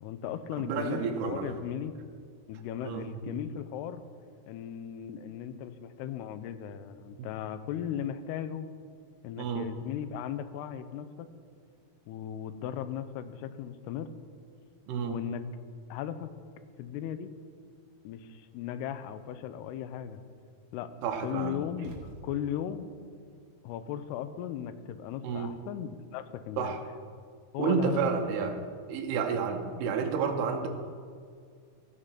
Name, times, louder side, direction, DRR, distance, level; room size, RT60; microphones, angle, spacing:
voice 1, 0.0-2.0 2.5-4.0 4.5-8.7 9.2-11.3 12.1-14.1 15.0-15.4 15.9-16.3 16.8-17.3 18.0-20.2 20.7-20.9 21.2-22.9 23.6-26.8 27.5-28.1 28.5-28.6, left 10 dB, 90° left, 12 dB, 2.6 m, -37 dB
voice 2, 0.6-1.5 2.8-3.0 9.4-9.7 14.9-15.2 21.0-21.6 25.2-25.5 26.6-26.8 27.6-28.6 28.9-30.7, right 6 dB, 80° right, 4 dB, 2.7 m, -30 dB
sound 1, 21.8-22.8, right 2 dB, 60° right, 1.8 m, -46 dB
14.5 x 5.2 x 5.7 m, 2.1 s
omnidirectional pair, 4.6 m